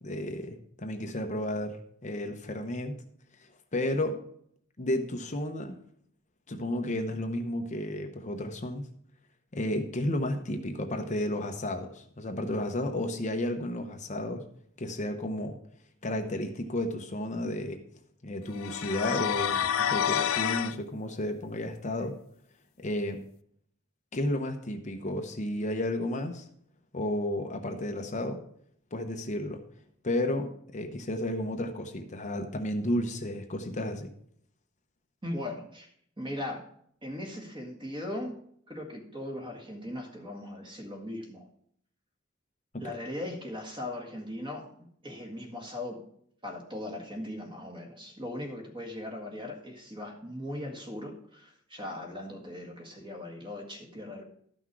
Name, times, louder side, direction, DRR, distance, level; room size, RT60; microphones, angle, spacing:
voice 1, 0.0-3.0 3.7-4.2 4.8-5.8 6.5-8.9 9.5-14.4 14.8-15.6 16.0-17.8 18.2-22.2 22.8-23.2 24.1-26.5 26.9-28.4 28.9-29.6 30.0-34.1, left 1 dB, 35° left, 5 dB, 0.8 m, -32 dB
sound 1, 18.6-20.7, left 9 dB, 75° left, 0.5 m, -28 dB
voice 2, 35.2-35.9 36.2-36.7 37.0-38.4 38.7-41.5 42.8-46.0 46.4-54.2, left 1 dB, 25° right, 2 dB, 1.9 m, -39 dB
12.5 x 6.0 x 4.7 m, 0.66 s
head